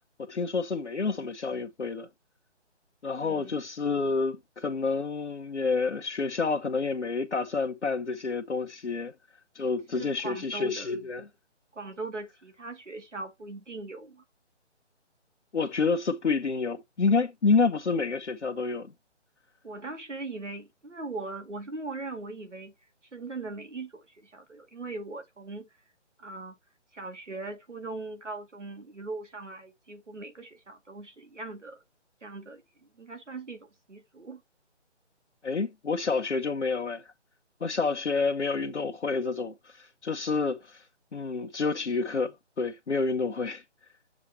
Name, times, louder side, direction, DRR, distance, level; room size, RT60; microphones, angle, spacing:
voice 1, 0.2-2.1 3.0-9.1 9.5-11.3 15.5-18.9 35.4-37.1 37.6-40.8 41.1-43.6, left 4 dB, 70° left, 1.0 m, -29 dB
voice 2, 3.2-3.6 9.9-10.9 11.7-14.2 19.6-22.7 23.1-25.7 26.2-26.5 26.9-31.8 32.2-32.6 33.0-34.4, right 3 dB, 80° right, 2.1 m, -40 dB
7.3 x 6.2 x 2.8 m
figure-of-eight pair, 150°, 36 cm